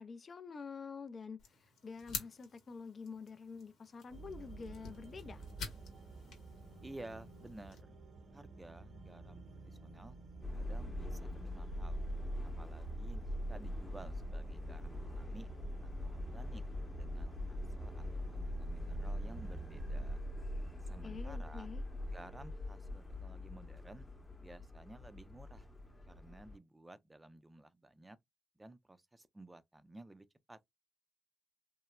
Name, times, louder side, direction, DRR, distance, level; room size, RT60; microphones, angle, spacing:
voice 1, 0.0-5.4 21.0-21.8, left 5 dB, 45° left, 0.3 m, -48 dB
sound 1, 1.4-7.8, left 5 dB, 75° left, 0.9 m, -49 dB
sound 2, 4.1-20.2, right 3 dB, 65° right, 0.7 m, -53 dB
voice 2, 6.8-7.9 8.3-10.2 10.5-12.0 12.6-15.5 15.8-16.6 17.0-20.2 20.8-21.7 22.1-24.1 24.4-25.7 26.1-28.2 28.6-30.6, right 2 dB, 20° right, 0.4 m, -54 dB
Subway metro underground, 10.4-26.6, left 1 dB, 25° left, 0.8 m, -42 dB
3.0 x 2.0 x 2.2 m
supercardioid pair, 60°, 0 cm